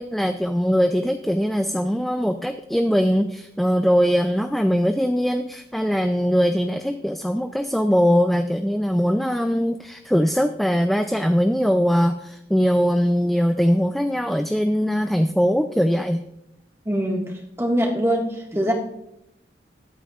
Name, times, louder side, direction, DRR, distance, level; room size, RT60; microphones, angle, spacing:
voice 1, 0.0-16.2, equal, ahead, 6 dB, 0.4 m, -21 dB
voice 2, 16.9-17.3 17.6-18.7, equal, 15° right, 0 dB, 1.7 m, -22 dB
22.0 x 8.8 x 2.5 m, 0.81 s
head